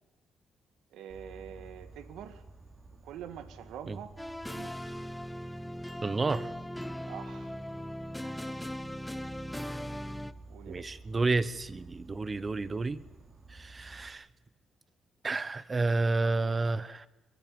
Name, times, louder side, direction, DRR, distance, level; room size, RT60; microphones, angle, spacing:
voice 1, 0.9-2.4 3.0-4.2 4.5-5.0 7.1-7.6 10.5-11.0, right 9 dB, 85° right, 10 dB, 1.7 m, -45 dB
Insect, 1.1-14.1, right 2 dB, 45° right, 3.2 m, -51 dB
sound 1, 4.2-10.3, equal, 5° left, 1.0 m, -39 dB
voice 2, 6.0-6.5 10.7-13.0 13.5-14.3 15.2-17.1, right 3 dB, 30° right, 16 dB, 1.1 m, -30 dB
23.0 x 20.5 x 7.0 m, 1.1 s
cardioid pair, 90°, 0 cm